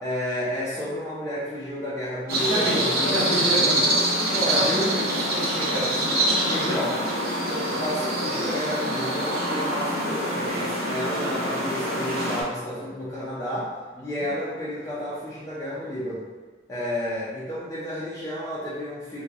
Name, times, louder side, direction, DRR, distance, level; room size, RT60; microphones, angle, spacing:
voice 1, 0.0-3.8 4.5-4.9 6.5-7.0 7.6-13.7 14.0-16.3 16.7-19.2, equal, 15° left, -9 dB, 0.5 m, -31 dB
sound 1, 2.3-12.4, right 1 dB, 55° right, 0.7 m, -25 dB
voice 2, 2.5-2.8 3.1-3.8 4.2-7.0 14.0-14.3, equal, 20° right, -10 dB, 1.0 m, -30 dB
3.1 x 2.3 x 3.8 m, 1.3 s
head